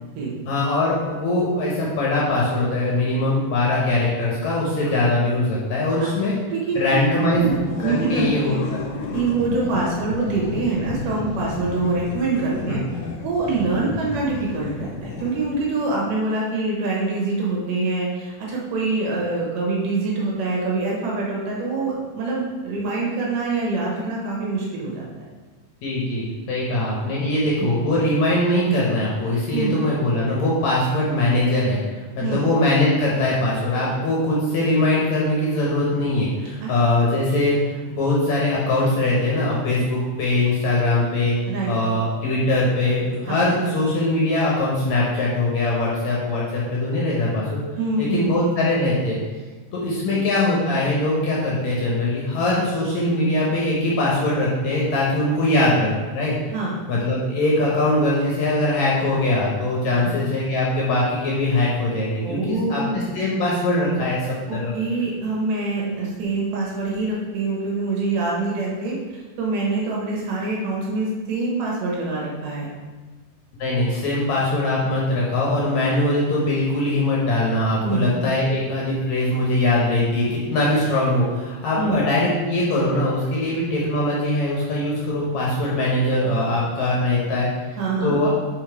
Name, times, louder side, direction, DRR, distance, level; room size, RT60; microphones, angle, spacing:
voice 1, 0.5-6.3 6.8-7.4 7.8-8.8 25.8-41.4 41.7-47.6 48.0-49.2 49.7-56.4 56.9-64.7 73.6-87.5 88.0-88.3, left 1 dB, 65° left, -4 dB, 2.0 m, -21 dB
voice 2, 6.5-7.5 7.8-8.6 9.1-12.8 13.2-25.3 27.6-27.7 29.5-29.8 32.2-32.5 36.6-36.7 37.0-37.1 41.5-41.7 43.3-43.4 47.8-48.3 50.1-50.2 56.5-56.8 59.9-60.1 62.2-63.0 64.5-72.7 77.8-78.1 81.8-82.0 87.8-88.2, right 3 dB, 70° right, -3 dB, 2.8 m, -25 dB
sound 1, 7.3-15.8, left 3 dB, 90° left, 2.5 m, -32 dB
5.7 x 5.0 x 4.6 m, 1.3 s
omnidirectional pair, 4.1 m